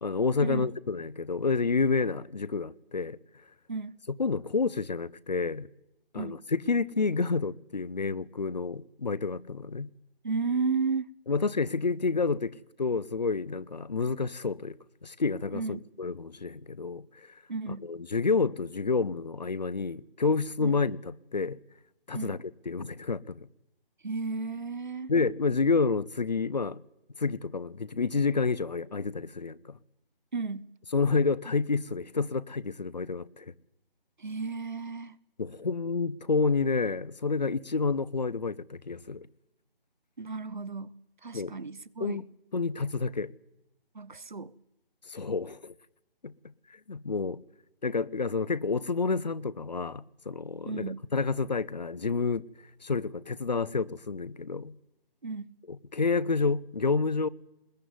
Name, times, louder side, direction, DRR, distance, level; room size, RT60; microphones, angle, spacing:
voice 1, 0.0-3.2 4.2-5.7 6.1-9.9 11.3-14.7 15.0-17.3 17.8-21.6 22.1-22.4 22.7-23.5 25.1-26.8 27.2-29.7 30.9-33.5 35.4-39.3 41.3-41.5 42.0-42.3 42.5-43.3 45.1-45.7 46.2-46.3 46.9-47.4 47.8-50.9 51.1-52.4 52.8-54.7 55.7-57.3, left 4 dB, 45° left, 0.9 m, -29 dB
voice 2, 10.2-11.1 15.5-15.9 17.5-17.9 20.6-20.8 22.1-22.4 24.0-25.1 30.3-30.7 34.2-35.2 40.2-40.9 41.2-42.2 43.9-44.5 50.6-51.1 55.2-55.5, right 4 dB, 55° right, 1.0 m, -33 dB
21.0 x 20.0 x 9.6 m
figure-of-eight pair, 155°, 30 cm